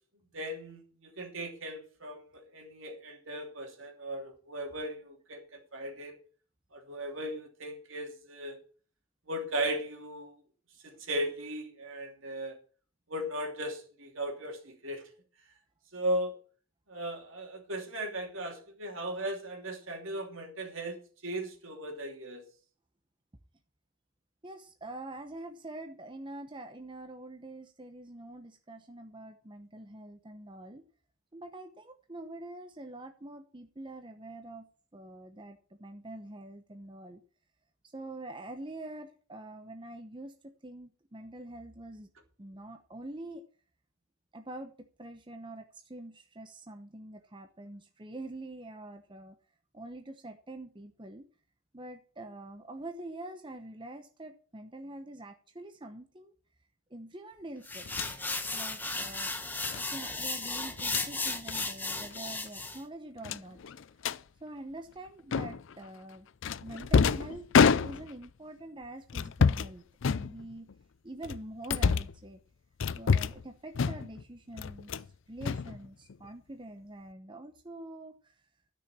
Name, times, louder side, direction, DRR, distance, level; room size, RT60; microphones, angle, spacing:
voice 1, 0.3-5.4 5.7-6.1 6.7-8.6 9.3-10.3 10.8-12.6 13.1-15.0 15.9-16.3 16.9-21.0 21.2-22.4, right 1 dB, 65° right, 3 dB, 2.9 m, -37 dB
voice 2, 24.4-30.8 31.3-34.7 34.9-37.2 37.9-42.1 42.4-43.4 44.3-49.4 49.7-51.3 51.7-56.3 56.9-57.8 58.5-59.3 59.7-63.6 64.4-66.3 66.6-67.5 67.8-70.7 71.0-72.4 73.0-78.4, right 1 dB, 20° right, 6 dB, 0.8 m, -45 dB
sound 1, 57.7-62.8, left 3 dB, 10° left, 1.0 m, -35 dB
sound 2, 57.9-58.1 59.6-59.8 60.7-61.1 61.5-61.7 62.0-62.2 62.5-62.6 63.2-64.2 65.3-65.7 66.4-68.3 69.1-69.7 70.0-70.7 71.2-72.2 72.8-73.5 73.7-74.2 74.6-75.1 75.4-76.2, left 5 dB, 60° left, 0.4 m, -28 dB
12.5 x 6.4 x 7.4 m, 0.42 s
head